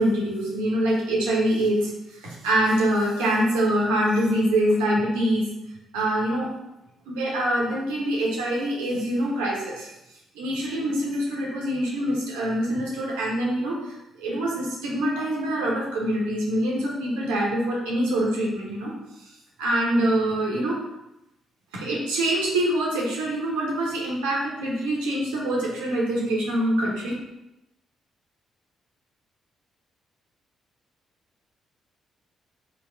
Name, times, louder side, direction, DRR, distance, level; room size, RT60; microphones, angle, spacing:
voice 1, 0.0-5.4 5.9-6.5 7.1-9.9 10.3-18.9 19.2-19.3 19.6-20.8 21.7-27.1, right 1 dB, 75° right, -3 dB, 1.1 m, -25 dB
3.4 x 3.3 x 4.7 m, 0.89 s
figure-of-eight pair, 40°, 0 cm